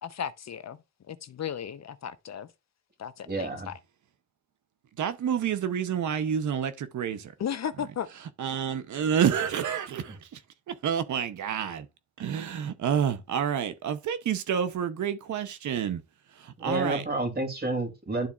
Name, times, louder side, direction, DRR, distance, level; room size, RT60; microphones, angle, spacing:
voice 1, 0.0-0.8 1.1-2.5 3.0-3.8 7.4-8.1, left 8 dB, 65° left, 0.8 m, -35 dB
voice 2, 3.3-3.7 10.1-10.2 16.6-18.3, right 2 dB, 35° right, 2.6 m, -30 dB
voice 3, 5.0-7.3 8.4-10.2 10.7-11.8 12.2-16.0 16.6-17.0, right 8 dB, 85° right, 0.8 m, -28 dB
12.0 x 4.1 x 2.4 m
cardioid pair, 90°, 29 cm